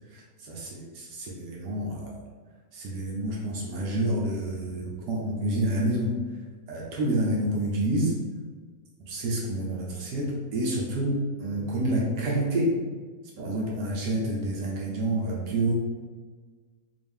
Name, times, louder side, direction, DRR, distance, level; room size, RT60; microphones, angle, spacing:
voice 1, 0.1-2.2 2.7-6.2 6.7-8.1 9.0-12.7 13.4-15.7, right 1 dB, 85° right, -3 dB, 1.3 m, -28 dB
3.9 x 2.5 x 3.5 m, 1.4 s
omnidirectional pair, 1.7 m